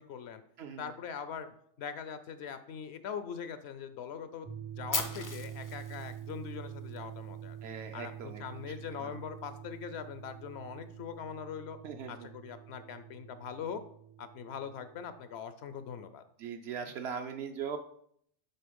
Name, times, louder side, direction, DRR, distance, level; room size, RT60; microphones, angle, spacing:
voice 1, 0.0-0.4 0.8-1.5 1.8-4.5 4.8-7.6 7.9-11.8 12.1-13.8 14.2-16.2, left 7 dB, 70° left, 11 dB, 0.8 m, -42 dB
voice 2, 0.6-0.9 7.6-8.4 9.0-9.1 11.8-12.3 16.4-17.8, right 7 dB, 70° right, 6 dB, 0.8 m, -40 dB
sound 1, 4.4-15.3, right 9 dB, 45° right, 0.3 m, -46 dB
Fire, 4.9-7.0, left 3 dB, 25° left, 0.4 m, -37 dB
6.8 x 3.8 x 5.1 m, 0.67 s
omnidirectional pair, 1.2 m